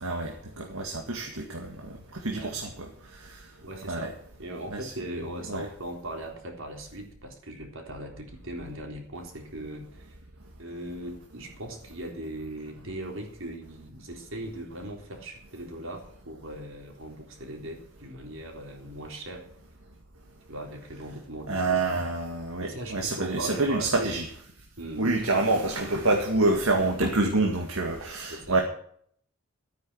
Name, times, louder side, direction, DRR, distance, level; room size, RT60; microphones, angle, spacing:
voice 1, 0.0-2.7 3.2-3.4 3.9-4.1 4.7-4.9 5.5-5.6 21.5-24.3 25.0-28.6, right 2 dB, 85° right, 2 dB, 2.0 m, -27 dB
voice 2, 3.6-4.1 4.4-10.2 10.6-19.5 20.5-22.1 22.6-24.1 24.8-25.1 28.3-28.6, right 1 dB, 65° right, 2 dB, 3.7 m, -39 dB
13.5 x 9.5 x 6.3 m, 0.62 s
head